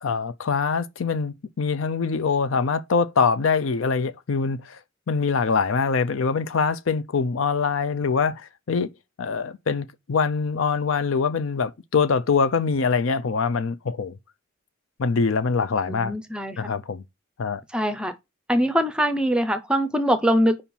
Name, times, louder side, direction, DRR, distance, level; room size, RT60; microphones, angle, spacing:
voice 1, 0.0-4.8 5.1-8.9 9.2-14.2 15.0-16.1 16.6-17.0 17.4-17.6, left 5 dB, 65° left, 0.5 m, -24 dB
voice 2, 15.9-16.7 17.7-18.1 18.5-20.6, equal, 5° right, 0.6 m, -23 dB
5.0 x 4.4 x 5.4 m
head